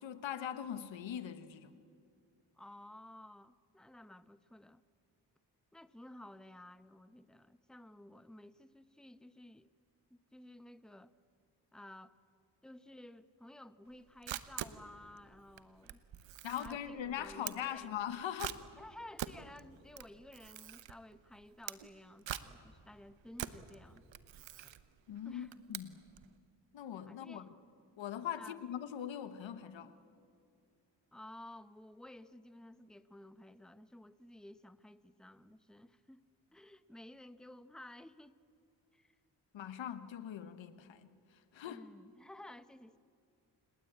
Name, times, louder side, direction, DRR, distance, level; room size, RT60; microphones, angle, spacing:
voice 1, 0.0-1.7 16.4-18.6 25.1-25.9 26.7-27.4 28.0-29.9 39.5-41.8, left 10 dB, 90° left, 1.3 m, -41 dB
voice 2, 2.6-4.8 5.7-9.7 10.1-11.1 11.7-12.2 12.6-16.0 16.6-17.9 18.8-24.0 24.6-24.7 25.2-25.6 27.1-27.5 28.4-28.6 31.1-38.4 38.9-39.1 41.6-43.0, left 1 dB, ahead, 1.0 m, -54 dB
Camera, 13.9-26.3, right 11 dB, 85° right, 1.0 m, -46 dB
28.5 x 20.0 x 8.8 m
cardioid pair, 55°, 44 cm